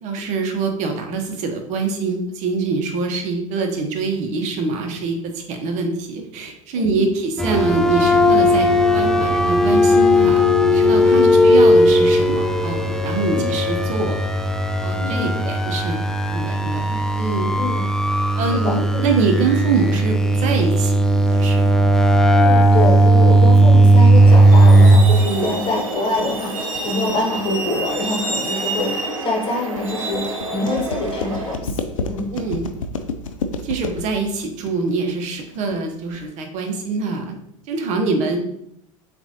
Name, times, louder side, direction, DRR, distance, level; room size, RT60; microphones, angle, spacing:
voice 1, 0.0-14.2 14.8-16.0 16.3-17.5 18.4-21.6 25.2-25.5 32.3-32.7 33.6-37.4 37.7-38.4, right 4 dB, 45° right, 4 dB, 0.9 m, -24 dB
voice 2, 6.7-7.1 11.1-11.4 13.2-13.5 15.0-15.5 17.6-17.8 18.5-19.0 22.3-31.7 32.1-32.3, left 2 dB, 30° left, 0 dB, 1.4 m, -25 dB
sound 1, 7.4-25.0, right 1 dB, 5° left, 0.4 m, -15 dB
Truck, 24.1-31.5, right 2 dB, 75° right, 0.9 m, -28 dB
sound 2, 24.3-36.3, left 4 dB, 70° left, 0.5 m, -31 dB
7.0 x 2.6 x 2.7 m, 0.74 s
figure-of-eight pair, 80°, 17 cm